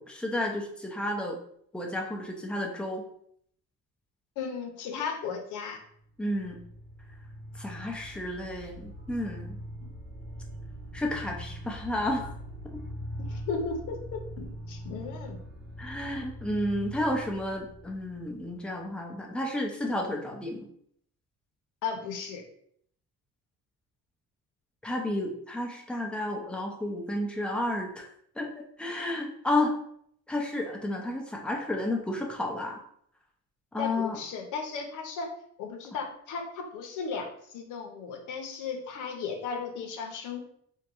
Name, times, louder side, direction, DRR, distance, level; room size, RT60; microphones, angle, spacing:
voice 1, 0.0-1.4 1.7-3.0 6.2-6.6 7.6-9.6 10.9-12.3 15.8-20.7 24.8-28.1 28.4-29.7 30.3-32.8 33.7-34.2, left 1 dB, 5° left, 0 dB, 0.6 m, -31 dB
voice 2, 4.4-5.8 13.3-15.4 21.8-22.4 33.8-35.3 35.6-40.4, left 5 dB, 85° left, 3 dB, 0.6 m, -35 dB
sound 1, 6.0-18.8, equal, 40° right, 0.8 m, -42 dB
3.6 x 2.1 x 3.0 m, 0.67 s
cardioid pair, 90°, 30 cm